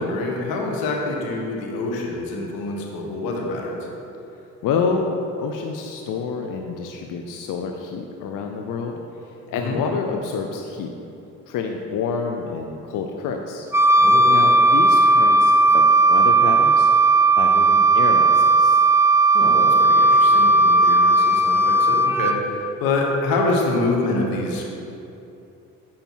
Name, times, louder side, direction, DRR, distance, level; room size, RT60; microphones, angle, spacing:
voice 1, 0.0-3.8 9.6-9.8 14.0-14.3 19.3-24.6, left 2 dB, 85° left, 0 dB, 1.1 m, -26 dB
voice 2, 4.6-10.9 11.5-13.7 14.3-15.8 16.1-16.9 17.4-18.8, left 5 dB, 65° left, 3 dB, 0.6 m, -28 dB
Wind instrument woodwind instrument, 13.7-22.4, right 2 dB, 10° right, 0.5 m, -15 dB
7.3 x 5.1 x 4.6 m, 2.8 s
supercardioid pair, 60°, 35 cm